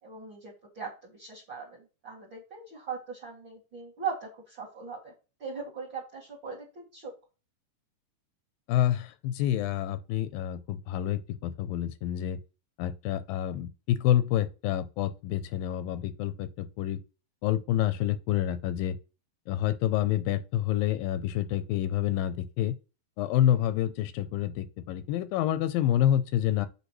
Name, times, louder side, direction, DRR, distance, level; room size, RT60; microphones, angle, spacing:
voice 1, 0.0-5.1 5.4-7.1, right 5 dB, 35° right, 2.6 m, -39 dB
voice 2, 8.7-12.4 12.8-17.0 17.4-19.0 19.5-22.7 23.2-26.7, left 12 dB, 90° left, 2.4 m, -28 dB
8.1 x 6.4 x 3.1 m
omnidirectional pair, 4.1 m